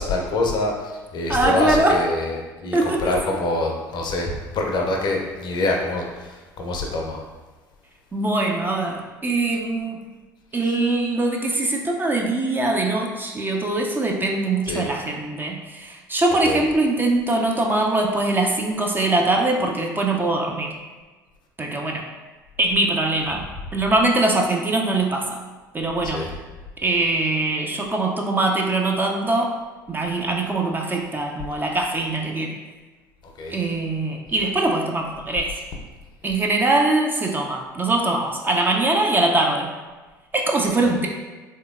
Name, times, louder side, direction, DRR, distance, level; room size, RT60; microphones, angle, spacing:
voice 1, 0.0-2.3 2.6-7.2 14.7-14.9 16.4-16.6 26.1-26.3 33.4-33.5 40.8-40.9, left 2 dB, 45° left, 1 dB, 0.6 m, -25 dB
voice 2, 1.3-2.1 2.7-3.2 8.1-10.0 10.5-20.7 21.6-22.1 22.6-23.5 23.7-25.4 25.7-26.2 26.8-29.5 29.9-32.5 33.5-35.5 36.2-39.7 40.3-41.1, right 2 dB, 20° right, 0 dB, 0.4 m, -22 dB
3.2 x 2.8 x 2.4 m, 1.3 s
figure-of-eight pair, 65°, 11 cm